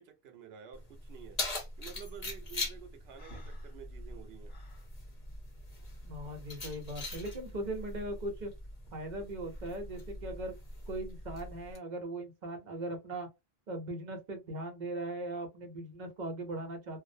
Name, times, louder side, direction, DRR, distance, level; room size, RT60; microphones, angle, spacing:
voice 1, 0.0-1.4 1.8-4.5, right 9 dB, 85° right, 0.8 m, -50 dB
Keys jangling, 0.7-11.8, left 2 dB, 45° left, 0.8 m, -42 dB
Breathing, 3.1-4.9, equal, 70° left, 1.1 m, -54 dB
voice 2, 6.1-8.5 8.9-10.5 10.9-13.3 13.7-17.0, right 1 dB, 50° right, 0.8 m, -39 dB
2.5 x 2.0 x 2.6 m
omnidirectional pair, 1.0 m